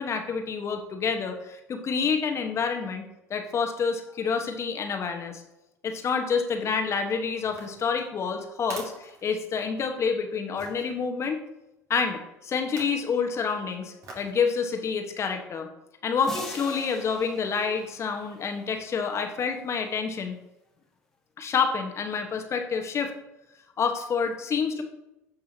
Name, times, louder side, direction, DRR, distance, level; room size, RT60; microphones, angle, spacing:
voice 1, 0.0-3.0 3.3-5.4 5.8-11.4 11.9-15.7 16.0-20.3 21.4-23.1 23.8-24.8, left 5 dB, 35° left, 4 dB, 1.3 m, -28 dB
sound 1, 7.4-9.9 10.6-10.9 12.6-13.1 14.0-14.4 14.9-15.0, right 3 dB, 45° right, 2.3 m, -45 dB
sound 2, 16.2-19.0, left 1 dB, 5° left, 1.7 m, -42 dB
16.0 x 5.5 x 2.9 m, 0.94 s
figure-of-eight pair, 70°, 8 cm